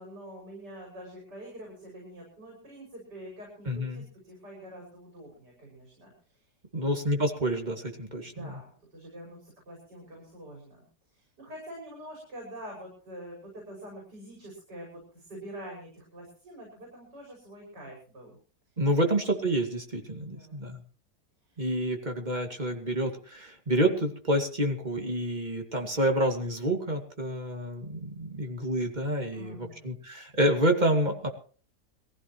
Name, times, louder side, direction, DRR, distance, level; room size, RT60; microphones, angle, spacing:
voice 1, 0.0-6.5 6.7-7.0 8.2-18.4 19.0-19.1 20.2-20.8 21.4-21.6 29.3-29.9, equal, 80° right, -1 dB, 6.7 m, -46 dB
voice 2, 3.7-4.0 6.7-8.6 18.8-20.8 21.6-31.3, right 1 dB, 25° right, 3 dB, 2.4 m, -28 dB
22.0 x 15.5 x 3.1 m, 0.40 s
omnidirectional pair, 1.8 m